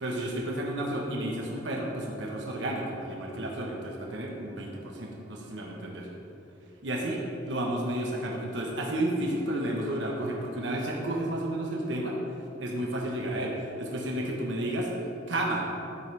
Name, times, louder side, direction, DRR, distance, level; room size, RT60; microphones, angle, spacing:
voice 1, 0.0-6.1 6.8-12.2 12.6-14.9 15.3-15.7, right 1 dB, 80° right, -1 dB, 1.3 m, -32 dB
12.0 x 9.1 x 3.5 m, 2.8 s
head